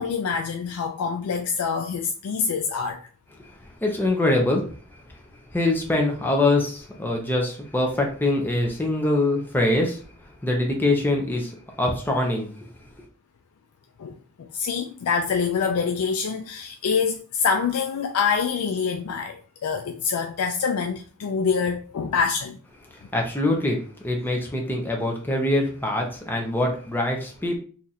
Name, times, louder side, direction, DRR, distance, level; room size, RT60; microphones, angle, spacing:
voice 1, 0.0-3.1 14.0-22.6, left 6 dB, 80° left, 0.4 m, -26 dB
voice 2, 3.8-4.6 5.5-10.0 10.4-11.5 11.8-12.5 23.1-27.6, left 2 dB, 10° left, 0.6 m, -23 dB
2.8 x 2.5 x 4.0 m
head